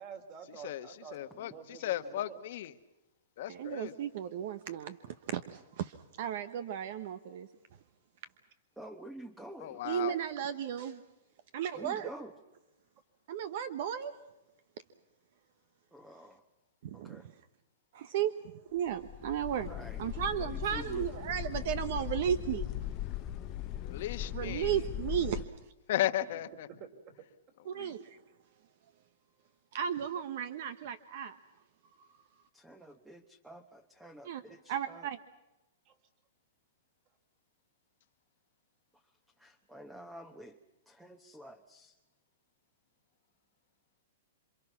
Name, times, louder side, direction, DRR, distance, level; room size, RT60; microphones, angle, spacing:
voice 1, 0.0-2.4 26.2-26.4 26.7-27.1 35.9-36.0, right 7 dB, 40° right, 5 dB, 3.6 m, -49 dB
voice 2, 0.6-2.7 3.4-4.0 9.6-10.2 23.8-24.8 25.9-26.7 27.7-27.9, left 13 dB, 60° left, 10 dB, 1.2 m, -35 dB
voice 3, 3.5-7.5 9.8-11.0 11.5-12.1 13.3-14.1 16.8-17.3 17.9-18.3 18.7-19.7 20.0-22.7 24.3-25.4 27.7-28.1 29.7-31.4 34.2-34.4 34.7-35.2, right 9 dB, 55° right, 12 dB, 1.0 m, -34 dB
voice 4, 8.8-10.2 11.8-12.3 15.9-16.4 16.9-17.2 19.7-20.0 20.4-21.1 32.5-35.1 39.4-40.6 40.9-41.9, right 1 dB, 5° right, 8 dB, 1.1 m, -49 dB
sound 1, 18.9-25.5, left 11 dB, 35° left, 0.8 m, -39 dB
27.5 x 25.5 x 6.0 m, 0.97 s
hypercardioid pair, 145°, 0 cm